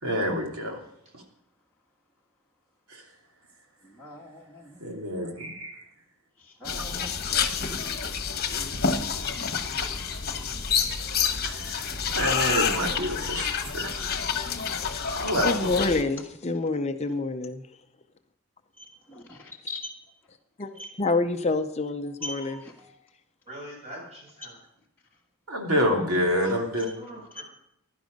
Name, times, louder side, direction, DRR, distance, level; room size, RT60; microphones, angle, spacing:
voice 1, 0.0-0.8 1.1-1.2 2.9-3.0 4.8-5.8 7.5-7.6 11.4-13.5 13.7-14.2 15.2-15.5 25.5-26.9, equal, 75° right, 2.9 m, -28 dB
voice 2, 3.8-4.9 6.4-7.5 8.5-10.0 12.2-12.4 18.8-19.9 20.8-21.0 22.2-22.7 27.3-27.4, left 2 dB, 10° left, 1.4 m, -42 dB
sound 1, 6.6-16.0, left 6 dB, 45° left, 1.3 m, -28 dB
voice 3, 14.8-17.7 20.6-22.6, left 3 dB, 30° left, 0.6 m, -28 dB
voice 4, 22.0-22.9 23.5-24.6 27.0-27.5, equal, 30° right, 7.5 m, -44 dB
15.5 x 11.5 x 5.3 m
head